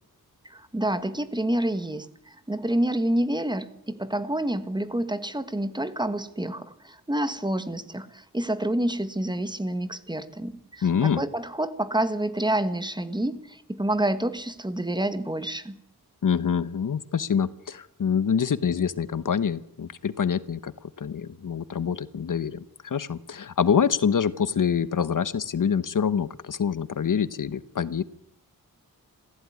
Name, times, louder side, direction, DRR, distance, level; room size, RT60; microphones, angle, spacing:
voice 1, 0.4-15.8, right 1 dB, 10° right, 1.5 m, -28 dB
voice 2, 10.8-11.2 16.2-20.7 21.0-28.0, left 7 dB, 60° left, 1.1 m, -26 dB
27.0 x 16.0 x 9.6 m
wide cardioid pair, 160°, 36 cm